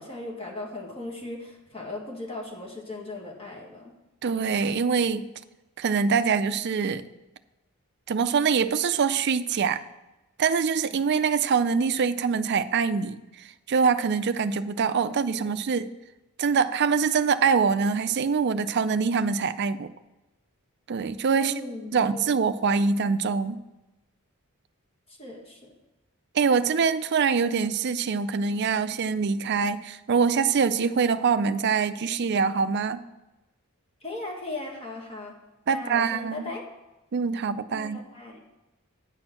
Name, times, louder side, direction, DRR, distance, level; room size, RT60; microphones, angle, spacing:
voice 1, 0.0-3.9 15.1-15.6 21.3-22.5 25.2-25.6 34.0-35.3 35.7-36.6 37.7-38.4, left 2 dB, 25° left, -1 dB, 1.7 m, -38 dB
voice 2, 4.2-5.3 5.8-7.1 8.1-9.8 10.4-13.2 13.7-15.9 16.4-19.9 20.9-21.5 21.9-23.6 26.3-33.0 35.7-36.5 37.1-38.0, right 5 dB, 50° right, 12 dB, 0.4 m, -24 dB
9.6 x 4.4 x 7.4 m, 0.99 s
head